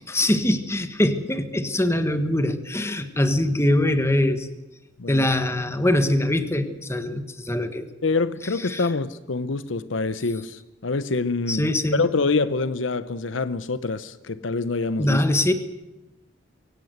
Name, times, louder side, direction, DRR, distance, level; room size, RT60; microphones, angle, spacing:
voice 1, 0.1-4.5 5.1-7.9 8.7-8.8 11.5-12.0 15.0-15.5, left 1 dB, 15° left, 1.5 m, -23 dB
voice 2, 8.0-15.2, left 3 dB, 80° left, 0.9 m, -26 dB
23.5 x 17.5 x 8.1 m
head